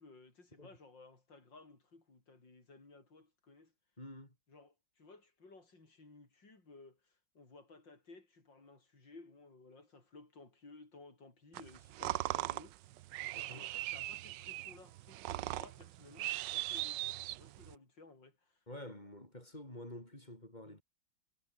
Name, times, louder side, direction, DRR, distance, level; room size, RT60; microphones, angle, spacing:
voice 1, 0.0-3.7 4.5-12.8 13.5-18.6, left 3 dB, 60° left, 6.4 m, -58 dB
voice 2, 4.0-4.3 13.3-13.7 18.7-20.8, left 1 dB, 20° left, 6.4 m, -49 dB
sound 1, 11.5-17.8, right 16 dB, 70° right, 1.1 m, -40 dB
omnidirectional pair, 2.2 m